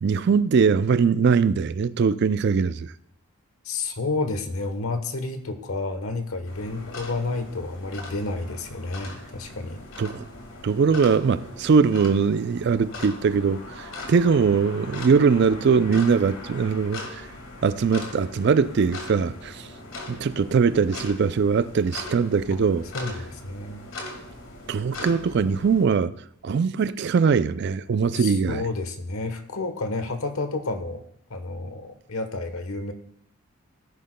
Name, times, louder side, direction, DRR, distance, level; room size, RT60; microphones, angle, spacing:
voice 1, 0.0-2.9 10.0-10.2 10.6-17.2 17.6-19.7 20.1-22.9 24.7-26.1 26.4-28.6, right 5 dB, 50° right, 0.3 m, -21 dB
voice 2, 3.6-9.8 22.9-23.9 28.1-31.0 31.3-32.9, left 3 dB, 75° left, 1.1 m, -30 dB
sound 1, 6.4-25.8, left 2 dB, 60° left, 2.0 m, -40 dB
16.5 x 10.0 x 2.2 m
head